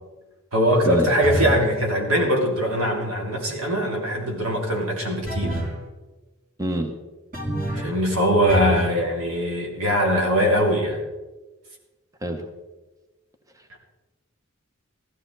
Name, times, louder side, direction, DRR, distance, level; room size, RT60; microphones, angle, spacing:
voice 1, 0.5-5.6 7.7-11.0 13.7-13.8, equal, 85° right, 0 dB, 3.3 m, -22 dB
sound 1, 1.2-1.7 5.3-5.8 7.3-8.0 8.5-9.0, equal, 40° right, 2.9 m, -27 dB
voice 2, 6.6-6.9 12.2-12.4, right 1 dB, 15° right, 5 dB, 1.0 m, -25 dB
15.5 x 13.5 x 4.0 m, 1.2 s
head